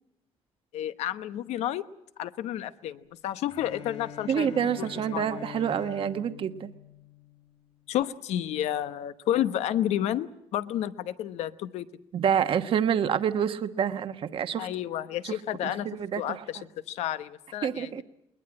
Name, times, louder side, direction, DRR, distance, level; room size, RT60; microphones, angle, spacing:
voice 1, 0.7-1.8 2.2-4.6 5.1-5.3 7.9-11.9 14.6-15.9 16.2-16.6 16.9-18.0, left 12 dB, 85° left, 12 dB, 1.0 m, -31 dB
Bowed string instrument, 3.5-7.5, left 8 dB, 70° left, 5.6 m, -44 dB
voice 2, 4.3-6.7 12.1-14.7 15.2-16.4 17.6-18.0, right 8 dB, 55° right, 9 dB, 1.1 m, -28 dB
21.0 x 21.0 x 8.7 m, 0.80 s
cardioid pair, 115°, 11 cm